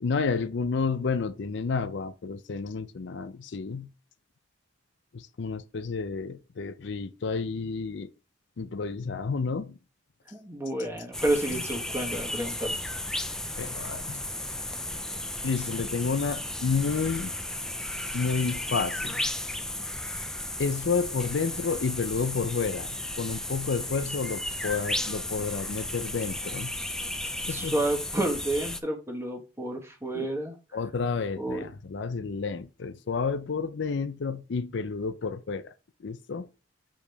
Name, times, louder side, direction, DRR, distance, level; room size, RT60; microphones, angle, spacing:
voice 1, 0.0-3.9 5.1-8.1 8.6-9.8 11.5-11.6 13.5-14.3 15.4-17.4 18.1-19.3 20.6-26.8 27.5-27.8 30.1-30.3 30.7-35.7 36.0-36.5, left 5 dB, 65° left, 0.5 m, -30 dB
voice 2, 10.3-12.7 27.5-30.5 31.4-31.7, right 1 dB, 15° right, 1.4 m, -30 dB
sound 1, 11.1-28.8, left 1 dB, 5° left, 0.4 m, -34 dB
7.0 x 5.0 x 3.4 m
head